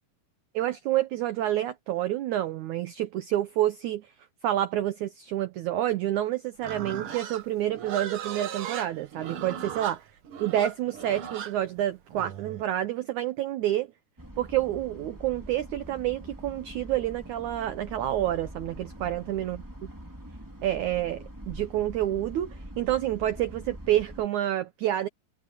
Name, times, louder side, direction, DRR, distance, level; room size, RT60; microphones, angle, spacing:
voice 1, 0.5-4.1 4.4-10.0 10.4-13.9 14.4-19.6 20.6-25.1, right 13 dB, 85° right, 1.7 m, -28 dB
Livestock farm animals working animals, 6.6-12.7, right 9 dB, 65° right, 1.4 m, -37 dB
sound 1, 14.2-24.2, right 1 dB, 5° right, 2.5 m, -44 dB
omnidirectional pair, 4.5 m